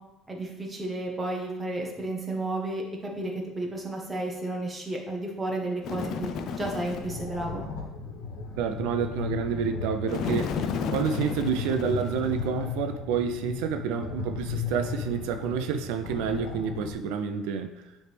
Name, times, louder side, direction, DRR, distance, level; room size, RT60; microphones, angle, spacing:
voice 1, 0.3-7.6, right 2 dB, 10° right, -1 dB, 0.9 m, -32 dB
Bird, 5.8-7.2 10.1-12.6, left 6 dB, 45° left, 0.4 m, -33 dB
sound 1, 6.9-16.9, left 5 dB, 75° left, 1.3 m, -36 dB
voice 2, 8.6-17.8, right 7 dB, 85° right, 7 dB, 0.5 m, -29 dB
9.4 x 3.2 x 3.3 m, 0.97 s
cardioid pair, 165°, 0 cm